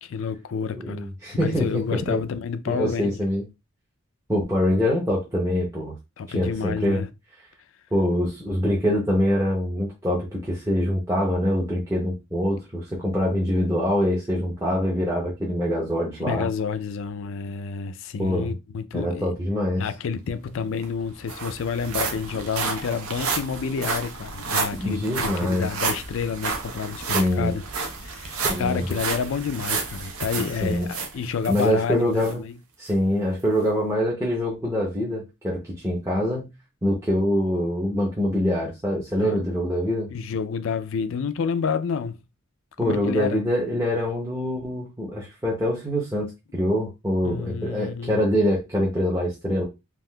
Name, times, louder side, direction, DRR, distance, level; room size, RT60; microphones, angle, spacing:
voice 1, 0.0-1.1 1.4-3.3 6.2-7.1 16.2-19.3 19.8-27.6 28.0-32.6 39.2-39.4 40.1-42.2 42.8-43.4 47.2-48.2, left 6 dB, 60° left, 0.3 m, -29 dB
voice 2, 0.7-2.2 2.7-3.4 4.3-5.9 6.3-7.0 7.9-16.5 18.2-18.5 18.9-19.8 24.8-25.7 27.0-27.5 28.4-28.8 30.6-30.9 31.5-32.4 32.8-36.5 36.8-40.1 42.8-49.6, equal, 15° right, 0.6 m, -24 dB
sound 1, 20.5-20.6 20.8-31.7 32.2-32.3 32.9-33.0, right 4 dB, 75° right, 0.7 m, -31 dB
3.5 x 2.4 x 2.2 m
head